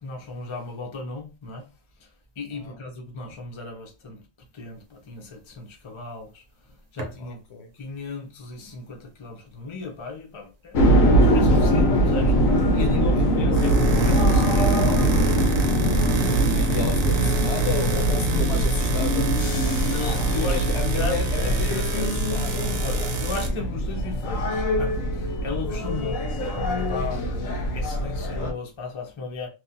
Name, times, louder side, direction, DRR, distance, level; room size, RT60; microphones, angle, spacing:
voice 1, 0.0-1.7 2.0-4.2 4.5-7.4 7.7-10.9 11.3-15.3 19.9-20.7 20.9-21.2 22.8-29.5, left 3 dB, 45° left, 0.4 m, -35 dB
sound 1, 7.0-7.2 13.3-23.5, right 5 dB, 85° right, 1.0 m, -30 dB
voice 2, 7.2-7.7 13.1-13.4 16.5-19.9 20.4-22.8, left 5 dB, 65° left, 0.8 m, -33 dB
sound 2, 10.7-28.5, right 1 dB, 85° left, 1.1 m, -22 dB
2.9 x 2.1 x 2.6 m
omnidirectional pair, 1.3 m